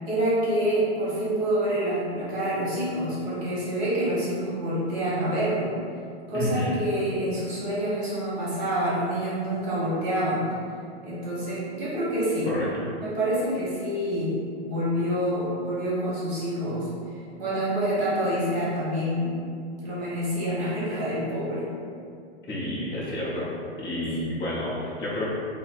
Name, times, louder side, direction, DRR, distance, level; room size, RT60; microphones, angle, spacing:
voice 1, 0.1-5.7 6.3-10.4 11.0-12.5 13.0-14.4 14.6-19.4 19.8-21.7, equal, 30° right, -9 dB, 1.2 m, -27 dB
voice 2, 6.3-6.7 12.5-12.7 22.5-23.5 23.8-25.3, left 1 dB, 10° left, -10 dB, 0.6 m, -29 dB
4.4 x 2.1 x 4.0 m, 2.4 s
hypercardioid pair, 160°, 32 cm